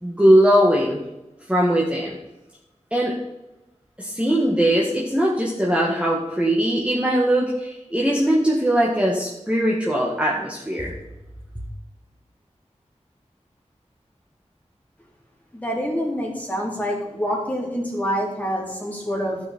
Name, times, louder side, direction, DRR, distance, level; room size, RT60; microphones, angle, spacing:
voice 1, 0.0-1.0 1.5-2.2 2.9-3.1 4.0-10.9, right 1 dB, 10° right, -4 dB, 1.8 m, -20 dB
voice 2, 15.5-19.4, equal, 10° left, -3 dB, 3.7 m, -26 dB
12.5 x 6.3 x 4.5 m, 0.93 s
wide cardioid pair, 55°, 12 cm